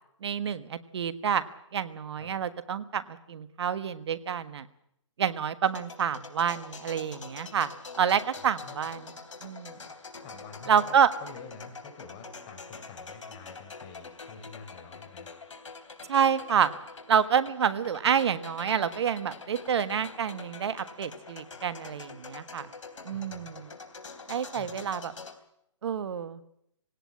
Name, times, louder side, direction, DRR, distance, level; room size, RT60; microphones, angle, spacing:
voice 1, 0.2-1.5 1.7-4.7 5.2-7.7 8.0-9.7 10.7-11.1 16.1-16.7 17.1-22.7 23.0-23.7 24.3-25.1 25.8-26.4, right 8 dB, 60° right, 13 dB, 1.5 m, -28 dB
sound 1, 5.7-25.4, left 4 dB, 80° left, 3.5 m, -45 dB
voice 2, 8.4-8.9 10.2-15.5 23.1-23.5 24.5-24.8, left 5 dB, 30° left, 6 dB, 5.2 m, -48 dB
19.5 x 17.5 x 8.6 m, 0.76 s
hypercardioid pair, 145°, 16 cm